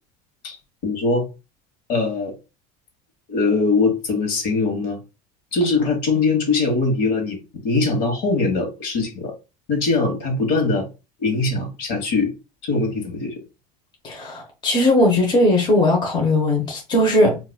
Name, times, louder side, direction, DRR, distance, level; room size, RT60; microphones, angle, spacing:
voice 1, 0.8-1.3 1.9-2.3 3.3-5.0 5.5-9.3 9.7-10.9 11.2-12.3 12.6-13.3, left 3 dB, 60° left, 1.4 m, -21 dB
voice 2, 14.0-17.4, left 1 dB, 25° left, 0.8 m, -18 dB
4.6 x 2.5 x 2.2 m
supercardioid pair, 140°, 19 cm